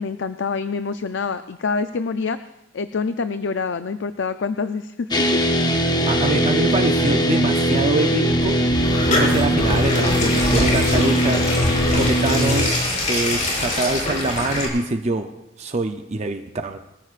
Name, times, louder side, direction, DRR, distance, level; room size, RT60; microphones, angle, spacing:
voice 1, 0.0-2.4 2.7-5.2, left 4 dB, 65° left, 10 dB, 0.5 m, -26 dB
sound 1, 5.1-12.7, equal, 20° left, 0.9 m, -20 dB
voice 2, 6.0-8.6 9.1-15.3 15.6-16.8, right 2 dB, 35° right, 7 dB, 0.6 m, -25 dB
sound 2, 8.4-14.7, left 1 dB, 40° left, 4.4 m, -24 dB
24.0 x 14.0 x 2.5 m, 0.94 s
head